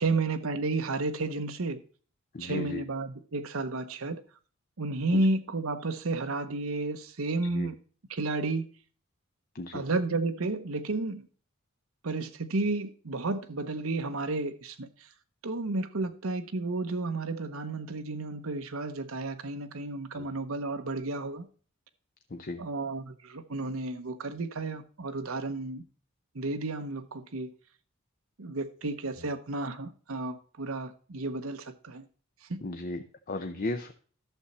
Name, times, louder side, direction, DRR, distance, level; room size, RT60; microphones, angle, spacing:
voice 1, 0.0-1.8 2.4-4.2 4.8-7.8 8.1-8.7 9.7-11.3 12.0-15.1 15.4-21.5 22.6-25.8 26.3-27.5 28.4-32.0 32.5-32.6, right 2 dB, 75° right, 0.9 m, -32 dB
voice 2, 2.3-2.8 5.1-5.2 7.5-7.7 9.5-9.8 20.1-20.2 22.3-22.6 32.6-33.9, left 2 dB, 40° left, 0.7 m, -35 dB
11.5 x 7.0 x 4.1 m
head